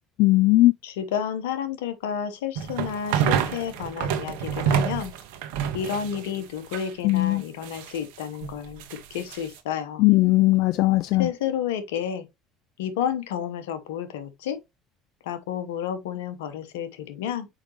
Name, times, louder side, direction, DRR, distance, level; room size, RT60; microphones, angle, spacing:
voice 1, 0.2-0.7 7.0-7.4 10.0-11.3, left 19 dB, 65° left, 0.4 m, -18 dB
voice 2, 0.8-5.1 5.7-10.0 11.1-12.3 12.8-14.6 15.2-17.5, left 8 dB, 85° left, 1.0 m, -31 dB
sound 1, 2.6-7.3 7.6-9.6, right 8 dB, 80° right, 1.2 m, -28 dB
6.3 x 5.0 x 3.0 m
supercardioid pair, 80°, 0 cm